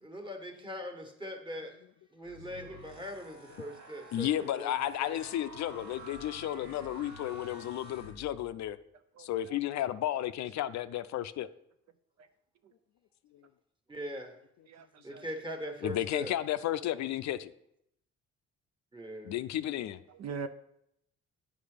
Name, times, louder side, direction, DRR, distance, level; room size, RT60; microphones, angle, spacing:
voice 1, 0.0-1.7 2.1-4.7 5.0-5.2 13.9-14.4 15.0-16.3 18.9-19.4, equal, 15° right, 4 dB, 1.5 m, -41 dB
sound 1, 2.2-8.7, equal, 85° right, 2.4 m, -50 dB
voice 2, 4.1-8.8 9.2-11.5 15.8-17.5 19.2-20.0, left 12 dB, 65° left, 13 dB, 0.4 m, -33 dB
voice 3, 9.2-9.6 14.7-15.2 20.1-20.5, right 5 dB, 60° right, 10 dB, 0.6 m, -42 dB
8.5 x 5.1 x 5.0 m, 0.76 s
cardioid pair, 90°, 30 cm